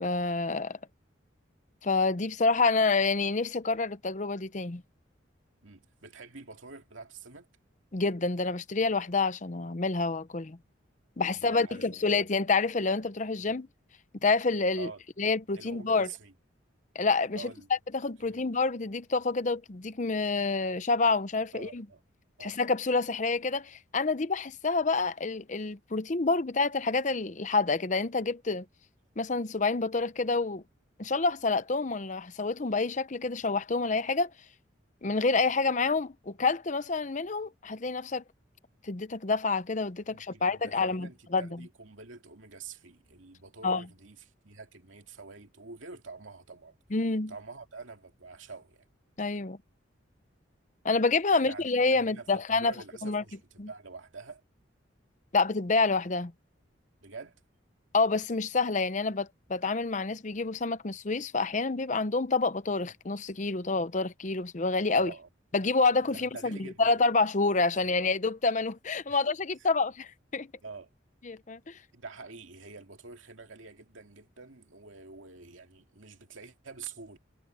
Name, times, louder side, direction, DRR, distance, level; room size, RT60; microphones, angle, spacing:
voice 1, 0.0-0.8 1.8-4.8 7.9-10.6 11.2-13.7 14.2-14.9 15.2-16.1 16.9-17.5 17.9-21.8 22.4-28.6 29.2-30.6 31.0-34.3 35.0-38.2 38.8-41.7 43.6-43.8 46.9-47.3 49.2-49.6 50.8-52.7 53.0-53.2 53.6-53.7 55.3-56.3 57.9-65.1 65.5-70.5 71.2-71.8, left 3 dB, 40° left, 0.7 m, -28 dB
voice 2, 5.6-7.5 11.3-12.2 13.5-13.6 14.7-15.0 15.6-16.3 17.3-17.7 18.2-18.5 21.5-22.0 22.4-22.6 40.1-44.2 44.4-46.7 47.3-48.9 51.3-54.4 57.0-57.4 64.9-65.3 66.1-66.9 67.8-67.9 69.1-69.2 70.6-70.9 71.9-77.2, right 4 dB, 85° right, 2.5 m, -47 dB
head